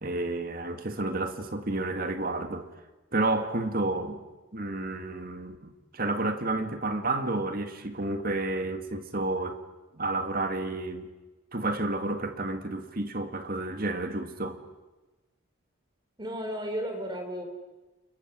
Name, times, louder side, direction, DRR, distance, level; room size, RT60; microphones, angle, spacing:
voice 1, 0.0-2.7 3.1-4.2 4.5-9.6 9.9-11.1 11.5-14.6, right 2 dB, 45° right, 1.9 m, -30 dB
voice 2, 16.2-17.4, equal, 20° right, 3.7 m, -33 dB
29.5 x 21.5 x 6.2 m
head